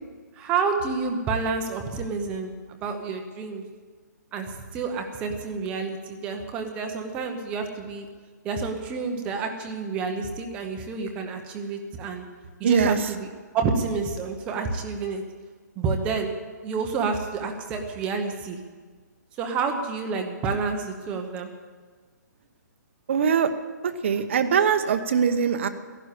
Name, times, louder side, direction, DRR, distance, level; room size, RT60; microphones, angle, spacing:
voice 1, 0.3-3.6 4.3-8.1 8.4-12.2 12.6-13.3 13.5-15.2 15.8-16.3 16.6-18.7 19.4-21.5, right 4 dB, 10° right, 4 dB, 0.9 m, -29 dB
voice 2, 12.6-13.0 23.1-23.5 23.8-25.7, right 7 dB, 40° right, 7 dB, 1.0 m, -22 dB
14.5 x 11.5 x 8.2 m, 1.5 s
hypercardioid pair, 175°, 10 cm